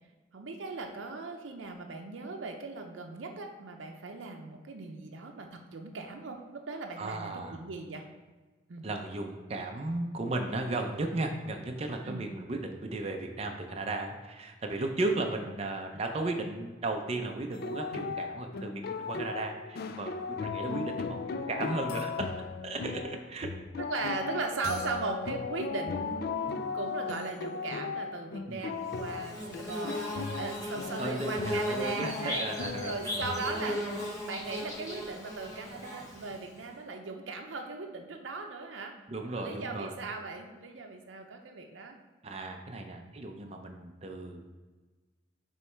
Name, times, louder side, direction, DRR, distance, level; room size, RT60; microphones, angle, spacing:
voice 1, 0.3-6.4 6.7-8.0 8.7-8.9 12.0-12.3 15.9-16.0 23.8-32.5 32.8-38.9 39.3-42.0 42.7-43.0, right 3 dB, 85° right, 3 dB, 0.6 m, -38 dB
voice 2, 7.0-7.6 8.8-22.3 22.6-23.5 28.5-28.7 31.0-33.2 33.6-33.7 39.1-39.9 42.2-44.4, right 2 dB, 35° right, 3 dB, 0.5 m, -35 dB
sound 1, 17.5-33.5, left 5 dB, 55° left, 0.3 m, -37 dB
Bird / Buzz, 28.9-36.6, left 1 dB, 20° left, 1.7 m, -37 dB
6.7 x 3.1 x 4.5 m, 1.3 s
head